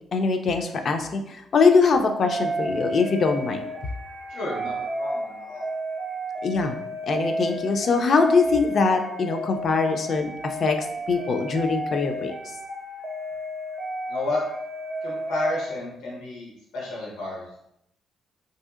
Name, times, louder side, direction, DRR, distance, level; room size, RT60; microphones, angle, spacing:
voice 1, 0.1-3.7 6.4-6.7 7.1-12.3, left 4 dB, 50° left, 6 dB, 0.3 m, -22 dB
sound 1, 2.2-15.8, equal, 50° right, 0.6 m, -32 dB
voice 2, 4.3-5.7 14.1-14.4 15.0-17.7, left 2 dB, 85° left, -4 dB, 0.9 m, -31 dB
2.7 x 2.6 x 2.4 m, 0.78 s
cardioid pair, 90°, 0 cm